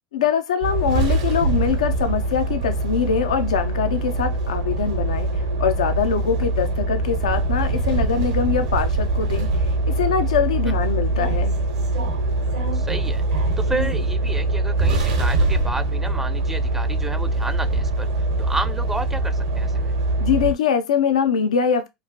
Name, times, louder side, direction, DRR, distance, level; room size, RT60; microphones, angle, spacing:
voice 1, 0.1-11.6 20.2-21.9, left 7 dB, 85° left, 0.4 m, -23 dB
sound 1, 0.6-20.5, right 2 dB, 80° right, 0.9 m, -23 dB
voice 2, 12.7-13.2 13.6-18.1 18.4-19.9, right 2 dB, 10° right, 0.4 m, -31 dB
2.9 x 2.5 x 2.7 m
hypercardioid pair, 95°, 3 cm